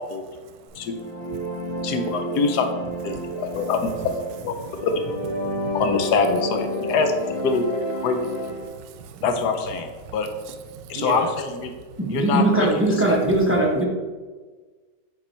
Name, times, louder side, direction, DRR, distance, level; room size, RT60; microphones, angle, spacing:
voice 1, 0.4-2.0 3.1-3.9 4.6-4.9 5.4-5.9 8.6-9.3 10.0-11.3 11.7-12.0 13.3-13.5, right 7 dB, 85° right, 9 dB, 1.3 m, -39 dB
sound 1, 0.8-8.7, equal, 45° left, 0.9 m, -30 dB
voice 2, 1.8-2.7 3.0-4.1 4.4-4.9 5.7-7.1 7.4-7.7 8.0-8.3 9.2-10.3 10.9-11.7 12.1-13.2, left 4 dB, 70° left, 6 dB, 1.2 m, -24 dB
voice 3, 12.0-13.9, right 1 dB, 15° right, -3 dB, 0.4 m, -20 dB
5.4 x 4.6 x 4.4 m, 1.4 s
omnidirectional pair, 1.9 m